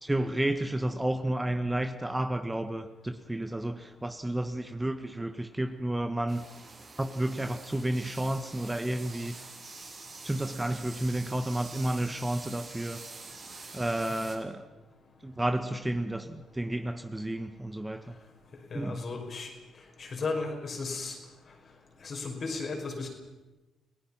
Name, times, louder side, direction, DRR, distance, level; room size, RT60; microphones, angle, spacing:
voice 1, 0.0-6.5 7.0-9.4 10.2-13.0 13.7-14.6 15.2-18.2 18.7-19.0, right 1 dB, 15° right, 8 dB, 1.7 m, -31 dB
sound 1, 6.3-14.3, right 3 dB, 45° right, 6.8 m, -46 dB
voice 2, 18.7-19.5 20.0-21.2 22.0-23.1, left 3 dB, 50° left, 2 dB, 5.4 m, -34 dB
29.5 x 17.5 x 5.7 m, 1.1 s
hypercardioid pair, 45°, 0 cm